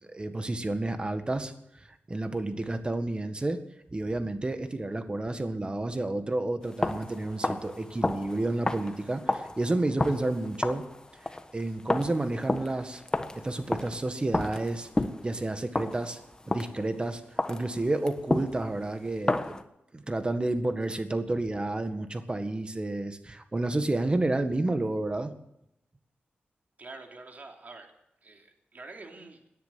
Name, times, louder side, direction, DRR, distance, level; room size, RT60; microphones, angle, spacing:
voice 1, 0.1-3.6 3.9-10.8 11.5-13.0 13.4-14.9 15.2-16.2 16.5-19.6 19.9-25.3, right 2 dB, 25° right, 8 dB, 1.7 m, -30 dB
sound 1, 6.6-16.9 17.4-19.6, left 2 dB, 20° left, 1.2 m, -32 dB
voice 2, 26.8-27.9 28.2-29.5, right 3 dB, 45° right, 2 dB, 3.2 m, -46 dB
18.0 x 10.5 x 7.7 m, 0.83 s
cardioid pair, 80°, 4 cm